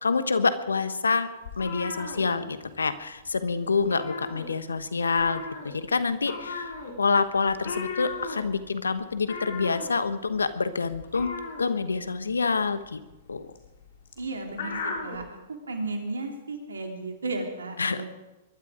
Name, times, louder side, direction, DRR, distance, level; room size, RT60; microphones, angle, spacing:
voice 1, 0.0-1.3 1.6-11.3 11.6-13.0 13.3-13.5 17.8-18.0, left 4 dB, 85° left, 12 dB, 1.2 m, -27 dB
sound 1, 1.4-2.9 3.2-3.4 3.7-4.8 5.1-15.2, left 4 dB, 70° left, 3.6 m, -37 dB
voice 2, 14.2-15.2 15.5-18.0, right 2 dB, 85° right, 3 dB, 3.2 m, -34 dB
22.0 x 12.0 x 5.1 m, 1.1 s
hypercardioid pair, 115°, 0 cm